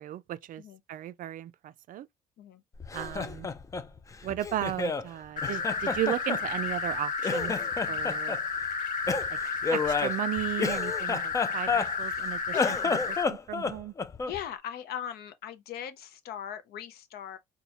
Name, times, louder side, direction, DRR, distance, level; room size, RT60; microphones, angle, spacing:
voice 1, 0.0-0.6 0.9-2.1 2.9-3.5 4.2-7.5 7.9-8.4 9.7-13.9, right 13 dB, 55° right, 0.4 m, -35 dB
Laughter, 2.8-5.1 5.4-7.0 7.2-8.4 9.1-12.2 12.5-14.4, left 4 dB, 20° left, 0.3 m, -30 dB
sound 1, 5.4-13.2, left 5 dB, 50° left, 1.0 m, -32 dB
voice 2, 12.5-13.0 14.3-17.4, left 10 dB, 70° left, 0.7 m, -39 dB
4.2 x 2.2 x 2.8 m
cardioid pair, 110°, 17 cm